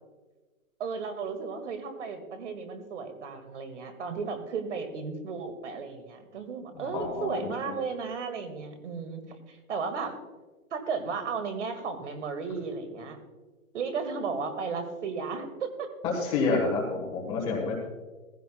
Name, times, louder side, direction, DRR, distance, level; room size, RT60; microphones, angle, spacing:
voice 1, 0.8-10.2 10.7-13.2 13.7-15.9, right 5 dB, 55° right, 7 dB, 2.1 m, -34 dB
voice 2, 6.7-7.3 7.7-7.8 16.1-17.8, left 3 dB, 10° left, -2 dB, 1.3 m, -29 dB
16.5 x 15.0 x 2.3 m, 1.3 s
hypercardioid pair, 175°, 43 cm